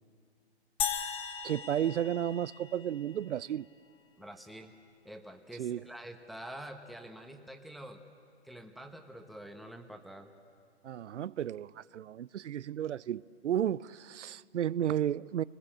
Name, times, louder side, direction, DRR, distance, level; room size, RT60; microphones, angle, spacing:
sound 1, 0.8-3.2, left 8 dB, 15° left, 1.2 m, -37 dB
voice 1, 1.4-3.7 5.6-5.8 10.8-15.4, right 10 dB, 85° right, 0.5 m, -33 dB
voice 2, 4.2-4.7 5.0-8.0 8.4-10.3, right 1 dB, ahead, 1.0 m, -47 dB
29.0 x 20.5 x 7.5 m
hypercardioid pair, 135°, 35 cm